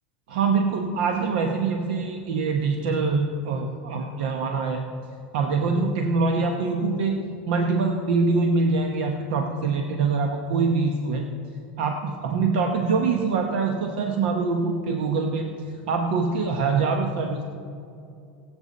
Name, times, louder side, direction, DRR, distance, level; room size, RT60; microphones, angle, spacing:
voice 1, 0.3-4.9 5.3-11.3 11.8-15.5 15.9-17.4, right 4 dB, 75° right, 3 dB, 1.0 m, -24 dB
22.0 x 8.0 x 4.1 m, 2.5 s
supercardioid pair, 150°, 5 cm